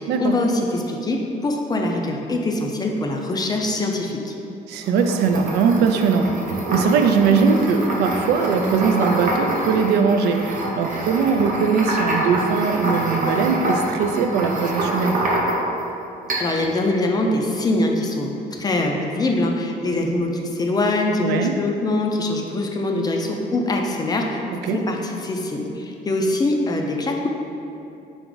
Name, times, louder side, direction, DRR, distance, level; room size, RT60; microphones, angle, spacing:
voice 1, 0.0-4.3 7.2-7.4 16.4-24.4 24.7-27.3, left 2 dB, 25° left, 1 dB, 0.4 m, -23 dB
voice 2, 4.7-6.3 6.7-15.2 21.2-21.5 24.6-24.8, right 5 dB, 80° right, 5 dB, 0.4 m, -20 dB
sound 1, 4.8-15.8 16.3-16.7, right 1 dB, 50° right, 0.9 m, -26 dB
3.9 x 3.5 x 3.8 m, 2.7 s
cardioid pair, 110°, 17 cm